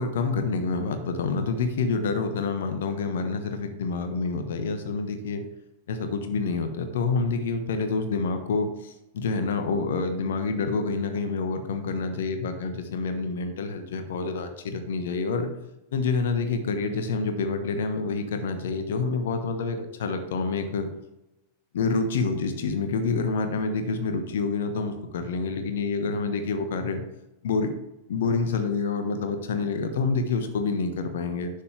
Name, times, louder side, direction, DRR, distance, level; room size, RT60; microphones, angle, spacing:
voice 1, 0.0-5.4 5.9-15.5 15.9-20.9 21.7-27.0 27.4-27.7 28.1-31.5, left 4 dB, 60° left, 7 dB, 1.2 m, -27 dB
9.8 x 6.7 x 3.3 m, 0.92 s
figure-of-eight pair, 90°, 0 cm